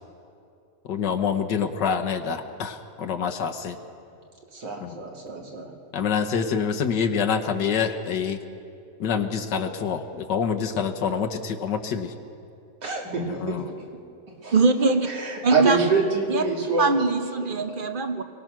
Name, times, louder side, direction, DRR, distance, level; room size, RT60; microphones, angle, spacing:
voice 1, 0.8-3.8 4.8-5.0 5.9-8.4 9.0-12.1 13.2-13.6, left 6 dB, 80° left, 4 dB, 1.8 m, -26 dB
voice 2, 4.5-5.7 12.8-13.6 14.4-14.5 15.1-16.9, right 4 dB, 75° right, 0 dB, 2.8 m, -26 dB
voice 3, 14.5-15.1 15.4-15.8 16.3-16.4 16.8-18.2, right 3 dB, 40° right, 7 dB, 0.8 m, -22 dB
23.0 x 18.5 x 6.1 m, 2.6 s
omnidirectional pair, 1.9 m